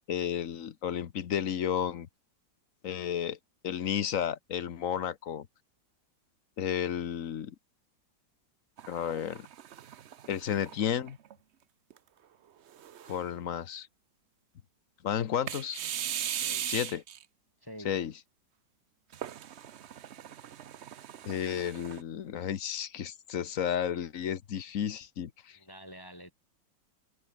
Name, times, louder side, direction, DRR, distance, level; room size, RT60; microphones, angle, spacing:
voice 1, 0.1-2.1 2.8-3.4 3.6-5.5 6.6-7.5 8.9-9.5 10.3-11.2 13.1-13.9 15.0-15.8 16.7-17.0 17.8-18.1 21.3-25.6, left 9 dB, 50° left, 1.2 m, -32 dB
sound 1, 8.8-11.3 11.9-12.0 12.7-13.4 15.5-17.2 19.1-22.0, right 10 dB, 60° right, 0.7 m, -39 dB
voice 2, 16.4-16.8 17.6-18.0 25.5-26.3, equal, 10° left, 2.0 m, -47 dB
omnidirectional pair, 2.0 m